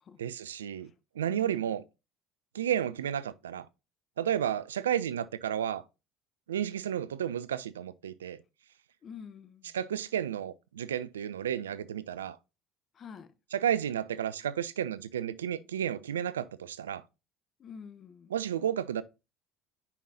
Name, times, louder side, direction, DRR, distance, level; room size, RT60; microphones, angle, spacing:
voice 1, 0.2-0.9 1.2-1.8 2.5-3.7 4.2-5.8 6.5-8.4 9.7-12.4 13.5-17.0 18.3-19.0, right 9 dB, 85° right, 0.4 m, -32 dB
voice 2, 1.3-1.8 9.0-9.7 12.9-13.3 17.6-18.3, left 7 dB, 45° left, 1.0 m, -48 dB
8.3 x 5.5 x 2.7 m
hypercardioid pair, 65°, 0 cm